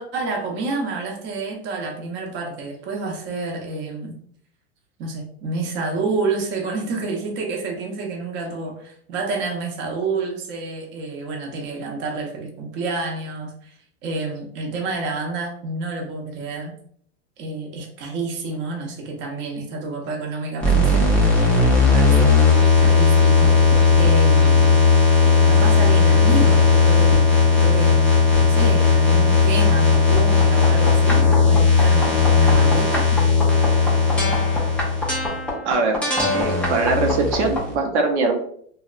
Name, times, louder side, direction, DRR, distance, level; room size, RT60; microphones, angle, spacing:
voice 1, 0.0-4.2 5.0-16.7 17.4-22.3 22.8-23.6 24.0-24.7 25.5-28.1 28.4-33.1, right 3 dB, 35° right, 1 dB, 0.6 m, -29 dB
sound 1, 20.6-37.7, left 4 dB, 5° left, 0.3 m, -16 dB
voice 2, 35.6-36.0 36.3-38.4, right 3 dB, 85° right, 2 dB, 0.6 m, -21 dB
2.7 x 2.1 x 2.4 m, 0.62 s
supercardioid pair, 130°, 33 cm